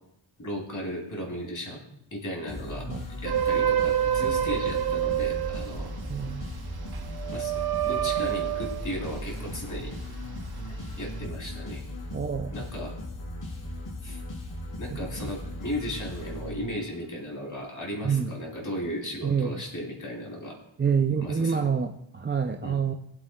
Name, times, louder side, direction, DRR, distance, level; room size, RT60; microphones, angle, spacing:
voice 1, 0.4-1.8 2.1-2.9 3.2-5.9 7.3-7.5 7.8-9.9 10.7-11.8 12.5-12.9 14.0-14.2 14.8-20.5 21.2-21.7 22.6-22.8, equal, 35° left, -2 dB, 3.0 m, -36 dB
sound 1, 2.5-17.0, left 1 dB, 85° left, 3.6 m, -38 dB
sound 2, 3.3-9.9 10.4-11.2, right 10 dB, 50° right, 0.8 m, -28 dB
voice 2, 6.1-6.5 12.1-12.7 15.2-15.3 18.0-18.3 19.2-19.5 20.8-22.9, right 6 dB, 25° right, 5 dB, 0.4 m, -27 dB
20.5 x 7.8 x 2.3 m, 0.82 s
wide cardioid pair, 115°, 49 cm